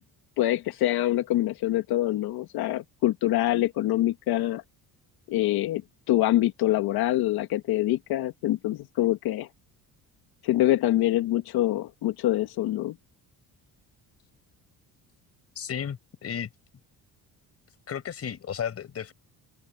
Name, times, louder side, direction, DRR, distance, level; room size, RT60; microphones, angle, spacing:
voice 1, 0.4-4.6 5.3-5.8 6.1-9.5 10.4-12.9, left 14 dB, 85° left, 1.8 m, -25 dB
voice 2, 15.5-16.5 17.9-19.1, left 8 dB, 40° left, 4.9 m, -33 dB
open air
cardioid pair, 135°, 37 cm